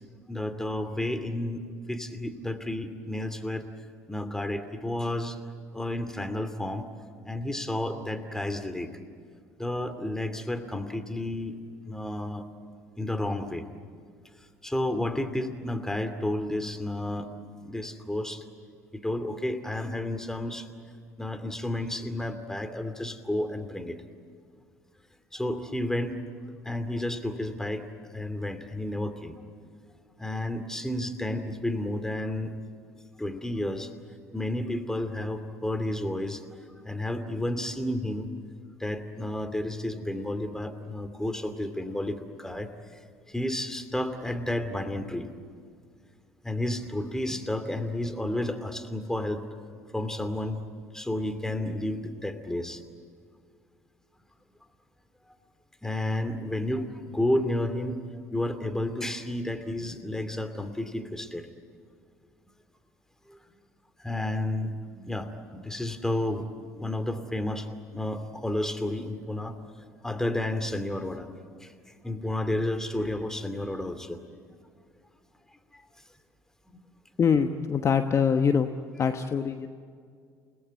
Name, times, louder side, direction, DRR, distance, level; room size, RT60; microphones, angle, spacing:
voice 1, 0.3-1.6 1.9-3.7 4.1-5.4 5.7-6.9 7.2-8.9 9.6-11.6 11.9-12.5 13.0-13.7 14.4-17.3 17.6-18.5 18.9-20.7 21.2-24.0 25.3-26.2 26.6-29.4 30.2-32.5 33.2-33.9 34.3-38.3 38.8-43.0 43.3-45.3 46.4-49.4 49.9-50.6 50.9-52.8 55.8-58.0 58.3-61.5 63.3-63.4 64.0-66.5 66.7-69.6 70.0-71.3 71.6-71.7 72.0-74.2 75.7-75.8 76.7-76.8, left 1 dB, 5° left, 8 dB, 2.6 m, -31 dB
voice 2, 77.2-78.7 79.0-79.7, left 6 dB, 35° left, 7 dB, 1.2 m, -24 dB
30.0 x 19.0 x 9.2 m, 2.1 s
figure-of-eight pair, 60°, 8 cm